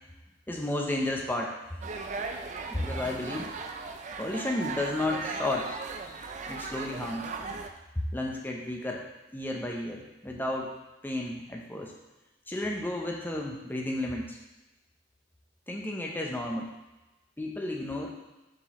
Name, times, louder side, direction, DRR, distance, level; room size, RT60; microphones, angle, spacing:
voice 1, 0.5-1.5 2.6-3.5 4.2-7.3 7.9-9.0 9.3-10.7 11.0-11.9 12.5-14.4 15.7-16.7 17.4-18.1, left 1 dB, 10° left, 0 dB, 0.7 m, -32 dB
sound 1, 1.8-7.7, right 4 dB, 35° right, 0.4 m, -37 dB
7.3 x 4.5 x 3.0 m, 1.0 s
head